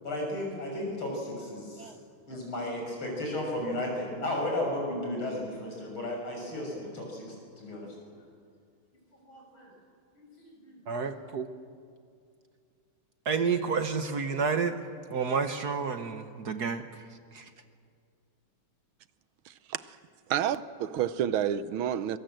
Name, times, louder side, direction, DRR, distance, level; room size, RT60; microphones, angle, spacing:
voice 1, 0.0-1.9 2.3-7.3 7.6-7.9 9.2-9.7 10.2-10.8, left 1 dB, 75° left, 6.9 m, -34 dB
voice 2, 10.9-11.5 13.2-14.8 15.1-16.8 17.3-17.4, right 5 dB, 55° right, 1.4 m, -30 dB
voice 3, 19.5-20.0 20.3-22.2, right 10 dB, 75° right, 1.5 m, -30 dB
23.5 x 23.0 x 7.7 m
omnidirectional pair, 2.3 m